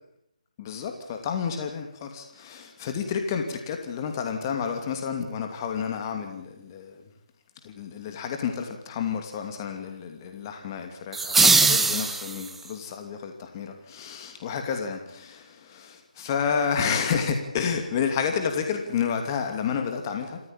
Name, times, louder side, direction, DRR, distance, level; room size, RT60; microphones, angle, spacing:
voice 1, 0.6-7.0 7.6-20.4, left 6 dB, 30° left, 5 dB, 2.7 m, -30 dB
sound 1, 11.1-12.7, right 4 dB, 5° right, 1.2 m, -21 dB
28.0 x 15.5 x 9.0 m, 0.79 s
figure-of-eight pair, 155°, 4 cm